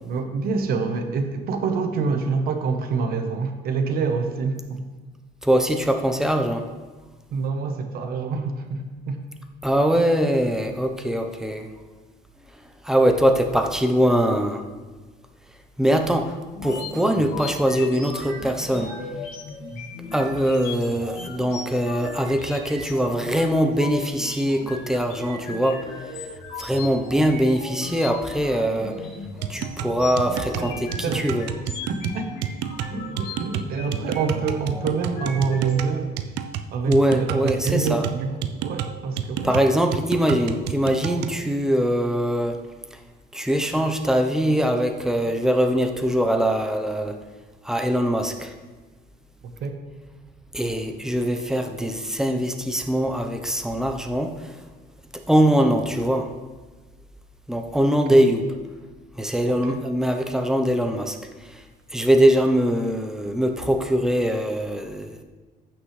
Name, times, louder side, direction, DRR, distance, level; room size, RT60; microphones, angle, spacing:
voice 1, 0.0-4.8 7.3-9.2 30.6-31.3 31.9-32.3 32.9-36.1 36.7-39.6 49.6-49.8 58.1-58.3 59.5-59.8, right 5 dB, 65° right, 6 dB, 1.1 m, -26 dB
voice 2, 5.4-6.7 9.6-11.7 12.8-14.6 15.8-16.3 16.6-18.9 20.1-25.9 26.6-28.9 29.5-31.5 36.9-38.1 39.4-42.6 43.3-47.2 47.6-48.5 50.5-54.3 55.3-56.3 57.5-58.4 59.2-61.2 61.9-65.2, equal, 5° right, 5 dB, 0.8 m, -22 dB
sound 1, 16.5-35.7, left 3 dB, 85° left, 2.9 m, -37 dB
sound 2, 29.4-41.4, right 9 dB, 90° right, 0.5 m, -31 dB
14.5 x 6.1 x 3.3 m, 1.3 s
cardioid pair, 110°, 17 cm